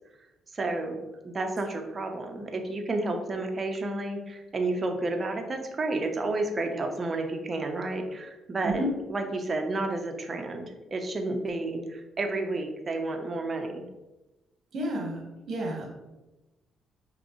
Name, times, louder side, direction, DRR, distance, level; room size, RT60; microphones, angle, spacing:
voice 1, 0.5-1.0 1.2-8.8 9.1-13.8, right 2 dB, 35° right, 4 dB, 0.8 m, -31 dB
voice 2, 14.7-15.9, right 1 dB, 55° right, -1 dB, 1.4 m, -31 dB
5.1 x 3.3 x 3.1 m, 1.1 s
cardioid pair, 90°, 0 cm